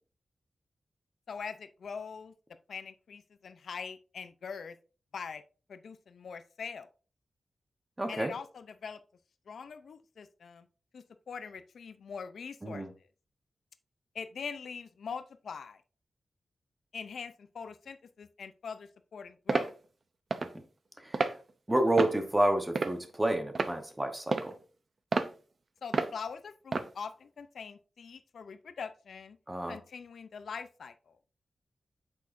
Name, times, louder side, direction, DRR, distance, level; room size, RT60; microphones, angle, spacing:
voice 1, 1.3-2.3 2.7-4.8 5.1-5.4 5.7-6.9 8.1-9.0 9.5-10.7 10.9-12.8 14.1-15.8 16.9-19.7 25.8-29.4 29.7-31.2, left 6 dB, 90° left, 11 dB, 0.5 m, -43 dB
voice 2, 8.0-8.3 12.6-12.9 21.0-21.3 21.7-24.6 29.5-29.8, right 1 dB, 15° right, 6 dB, 1.0 m, -29 dB
sound 1, 19.5-19.7 20.3-20.5 21.1-21.4 22.0-22.2 22.8-23.1 23.6-23.7 24.3-24.5 25.1-25.3 25.9-26.1 26.7-26.9, right 3 dB, 40° right, 0.6 m, -29 dB
8.4 x 6.3 x 2.6 m, 0.36 s
wide cardioid pair, 170°, 0 cm